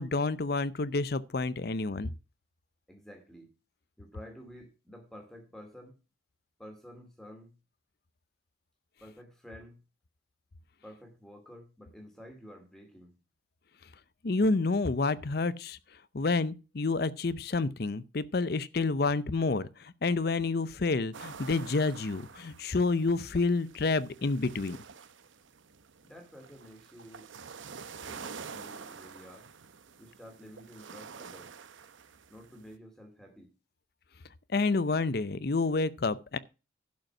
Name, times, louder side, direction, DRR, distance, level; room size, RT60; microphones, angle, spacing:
voice 1, 0.0-2.1 14.2-15.8 16.1-24.8 34.5-36.4, left 3 dB, 50° left, 0.6 m, -29 dB
voice 2, 2.9-3.5 4.0-6.0 6.6-7.5 9.0-9.8 10.8-13.1 26.0-27.3 28.0-29.5 30.0-31.5 32.3-33.5, equal, ahead, 2.6 m, -50 dB
sound 1, 21.1-32.8, right 6 dB, 80° right, 0.8 m, -48 dB
11.5 x 5.4 x 5.9 m
head